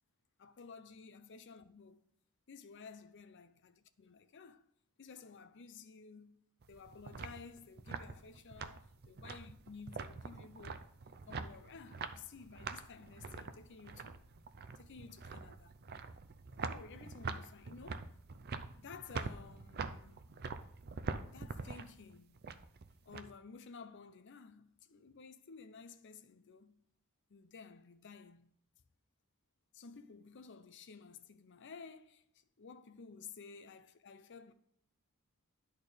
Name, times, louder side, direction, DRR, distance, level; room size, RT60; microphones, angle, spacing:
voice 1, 0.4-2.0 2.5-4.7 5.0-6.4 6.7-10.9 11.3-14.2 14.7-15.7 16.6-18.1 18.8-20.2 21.3-22.4 23.0-26.8 27.3-28.5 29.7-34.5, left 5 dB, 55° left, 0.6 m, -54 dB
sound 1, 6.6-23.2, right 4 dB, 45° right, 0.5 m, -45 dB
10.5 x 4.3 x 5.0 m
head